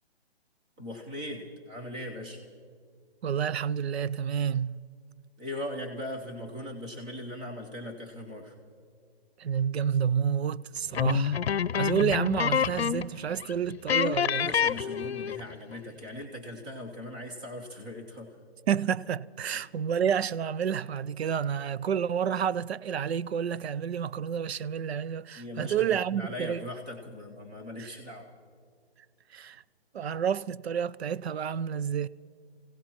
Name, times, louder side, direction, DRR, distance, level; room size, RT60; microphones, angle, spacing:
voice 1, 0.8-2.4 5.4-8.5 14.3-18.3 19.4-19.7 25.3-28.3, left 1 dB, 10° right, 0.6 m, -39 dB
voice 2, 3.2-4.8 9.4-11.4 11.8-14.5 18.7-26.7 27.8-27.9 29.3-29.6 29.9-32.1, right 8 dB, 80° right, 0.5 m, -29 dB
sound 1, 10.9-13.2 13.4-13.5 13.9-15.5, left 8 dB, 75° left, 0.6 m, -27 dB
28.0 x 17.0 x 3.0 m
hypercardioid pair, 165°, 31 cm